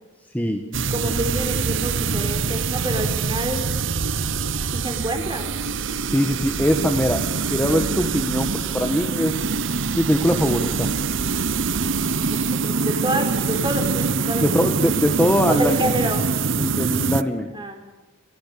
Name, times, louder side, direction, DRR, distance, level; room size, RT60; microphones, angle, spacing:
sound 1, 0.7-17.2, right 4 dB, 65° right, 0.9 m, -24 dB
voice 1, 0.9-3.6 4.7-5.5 12.3-14.7 15.5-16.2 17.5-17.8, right 1 dB, 20° right, 5 dB, 4.5 m, -27 dB
voice 2, 6.0-7.2 7.5-9.4 10.0-10.9 14.4-15.9 16.6-17.5, equal, 5° left, 4 dB, 1.4 m, -22 dB
29.5 x 16.0 x 6.9 m, 1.1 s
head